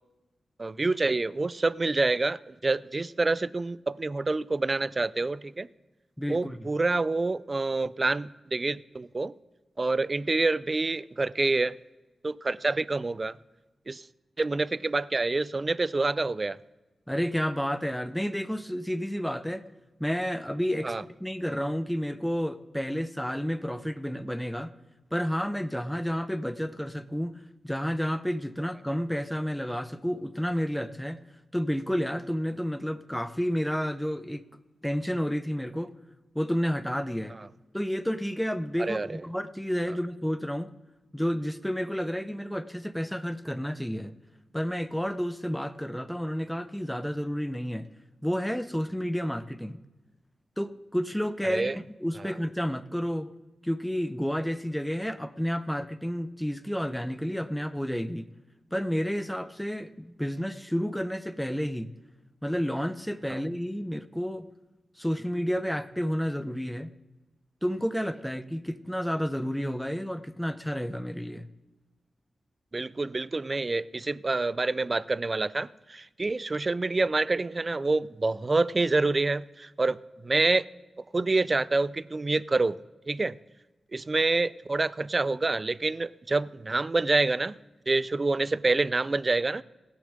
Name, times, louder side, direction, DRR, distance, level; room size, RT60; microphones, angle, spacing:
voice 1, 0.6-5.7 6.3-9.3 9.8-11.7 12.2-13.4 13.9-14.0 14.4-16.6 20.8-21.0 38.8-39.2 51.5-51.8 52.2-52.3 63.3-63.4 72.7-80.7 81.1-82.8 83.1-83.3 83.9-87.5 87.9-89.6, right 3 dB, 35° right, 0.4 m, -27 dB
voice 2, 6.2-6.6 17.1-19.6 20.0-24.7 25.1-31.2 31.5-34.4 34.8-35.9 36.3-37.4 37.7-40.7 41.1-44.1 44.5-47.9 48.2-49.8 50.6-53.3 53.6-58.3 58.7-61.9 62.4-64.5 65.0-66.9 67.6-71.5, equal, 5° left, 0.8 m, -30 dB
16.5 x 7.0 x 6.5 m
cardioid pair, 55°, 0 cm